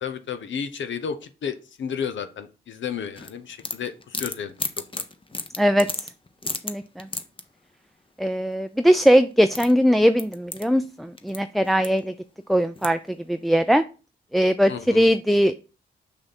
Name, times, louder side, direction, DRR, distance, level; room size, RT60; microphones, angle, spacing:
voice 1, 0.0-4.5 4.9-5.0 14.7-15.1, left 7 dB, 70° left, 10 dB, 0.8 m, -32 dB
sound 1, 3.2-7.4 9.0-9.1 9.3-11.4 11.6-12.2 12.8-13.2, left 3 dB, 25° left, 1.0 m, -33 dB
voice 2, 5.6-5.9 6.6-7.1 8.2-12.1 12.5-13.0 13.3-13.8 14.3-15.5, equal, ahead, 9 dB, 0.4 m, -20 dB
6.2 x 6.0 x 4.2 m, 0.34 s
cardioid pair, 55°, 20 cm